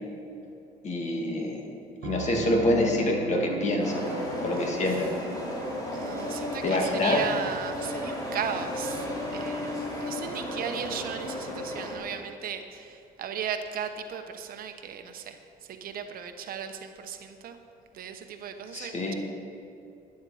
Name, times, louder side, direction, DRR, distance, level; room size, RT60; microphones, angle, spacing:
voice 1, 0.8-1.6 2.0-4.1 4.4-5.1 6.6-7.2 18.7-19.1, left 1 dB, 45° left, 1 dB, 1.9 m, -26 dB
Piano, 2.0-7.6, right 5 dB, 75° right, 1.2 m, -39 dB
sound 1, 3.8-12.0, left 1 dB, 20° left, 2.8 m, -34 dB
voice 2, 4.6-5.1 5.9-15.4 15.7-17.6 17.9-19.1, right 7 dB, 60° right, 6 dB, 1.0 m, -36 dB
12.0 x 10.5 x 4.9 m, 2.7 s
cardioid pair, 110°, 17 cm